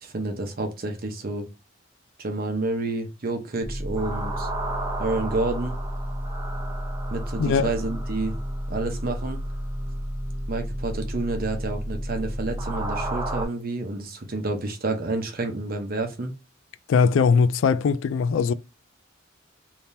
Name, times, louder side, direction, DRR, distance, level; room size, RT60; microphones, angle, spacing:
voice 1, 0.0-1.5 2.2-4.5 5.0-5.8 7.1-8.4 8.7-9.4 10.5-16.3, right 2 dB, 45° right, 0.8 m, -29 dB
sound 1, 3.6-13.5, right 1 dB, 20° right, 0.9 m, -30 dB
voice 2, 7.4-7.7 16.9-18.5, left 5 dB, 65° left, 0.3 m, -20 dB
3.4 x 2.8 x 2.7 m
head